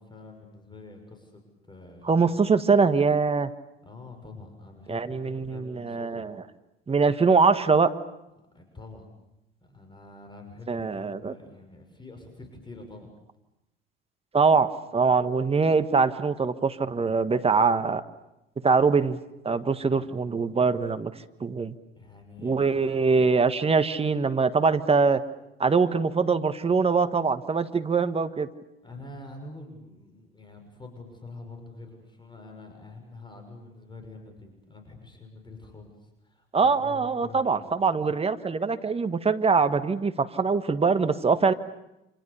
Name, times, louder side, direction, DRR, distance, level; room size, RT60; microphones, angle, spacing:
voice 1, 0.0-2.6 3.8-6.3 8.5-9.1 9.6-13.1 19.8-20.1 21.9-22.9 28.8-37.7, left 2 dB, 15° left, 5 dB, 6.5 m, -46 dB
voice 2, 2.0-3.5 4.9-6.3 6.9-7.9 10.7-11.3 14.3-18.0 18.6-19.2 19.4-21.1 21.4-21.7 22.4-25.2 25.6-28.5 36.5-41.5, right 4 dB, 20° right, 10 dB, 1.5 m, -23 dB
29.0 x 27.0 x 7.1 m, 0.90 s
hypercardioid pair, 75°, 29 cm